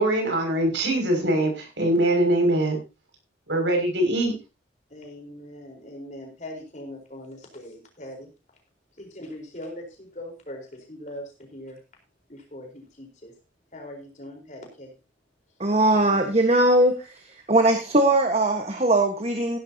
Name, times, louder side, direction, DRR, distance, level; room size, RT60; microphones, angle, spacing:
voice 1, 0.0-2.8 3.5-4.3, right 1 dB, 75° right, 3 dB, 6.2 m, -22 dB
voice 2, 4.9-8.3 9.0-11.8 12.3-13.3 13.7-14.9, left 1 dB, 40° left, 2 dB, 4.3 m, -41 dB
voice 3, 15.6-17.2 17.5-19.6, right 1 dB, 35° right, 5 dB, 1.4 m, -20 dB
16.0 x 11.5 x 2.9 m, 0.28 s
head